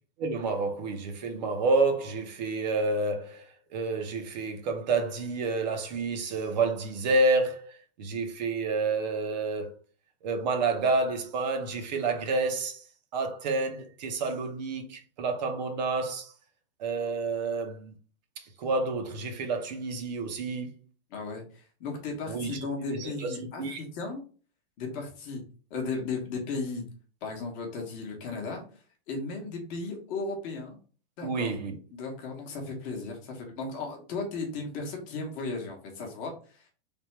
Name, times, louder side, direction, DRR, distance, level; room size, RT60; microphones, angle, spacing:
voice 1, 0.2-7.7 8.0-9.7 10.2-12.8 13.1-16.3 16.8-17.9 18.6-20.7 22.3-23.8 31.2-31.8, right 3 dB, 45° right, 0.8 m, -29 dB
voice 2, 21.1-24.2 24.8-25.4 25.7-26.9 27.2-28.6 29.1-30.8 31.2-31.5 31.9-36.7, left 3 dB, 25° left, 0.9 m, -35 dB
3.3 x 2.4 x 4.4 m
supercardioid pair, 170°, 30 cm